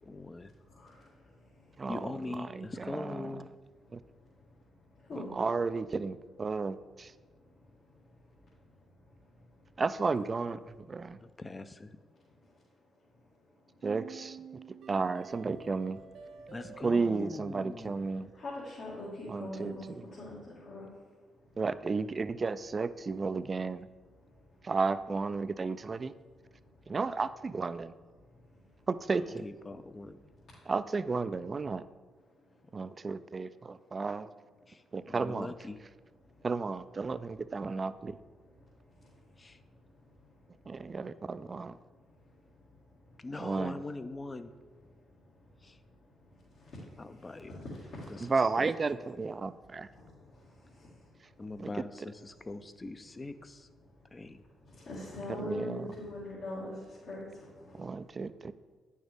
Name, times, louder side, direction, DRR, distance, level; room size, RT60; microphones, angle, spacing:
voice 1, 0.0-0.5 1.9-3.5 11.2-12.0 16.5-18.1 29.1-30.2 34.7-35.8 39.4-39.6 43.2-44.5 45.6-45.8 47.0-47.5 48.1-48.2 48.6-48.7 51.4-53.7 54.1-54.4, left 2 dB, 30° left, 11 dB, 0.6 m, -42 dB
voice 2, 0.7-1.1 5.1-5.3 18.0-18.1 18.3-19.8 20.1-20.9 46.6-46.7 47.2-48.5 49.9-50.0 50.7-50.9 54.7-57.8, left 1 dB, 70° left, -9 dB, 2.1 m, -42 dB
voice 3, 2.5-3.3 3.9-4.0 5.3-7.1 9.8-11.2 13.8-14.4 14.9-16.0 16.8-18.3 19.3-19.7 21.6-23.9 24.6-26.1 26.9-27.9 28.9-29.4 30.7-31.8 32.7-34.3 34.9-35.5 36.4-38.2 40.7-41.8 43.4-43.8 48.3-49.9 51.6-51.7 55.3-55.9 57.8-58.5, right 4 dB, 40° right, 14 dB, 0.3 m, -33 dB
sound 1, 13.8-18.9, right 7 dB, 75° right, 0.6 m, -50 dB
9.2 x 6.4 x 3.5 m, 1.4 s
supercardioid pair, 65°, 0 cm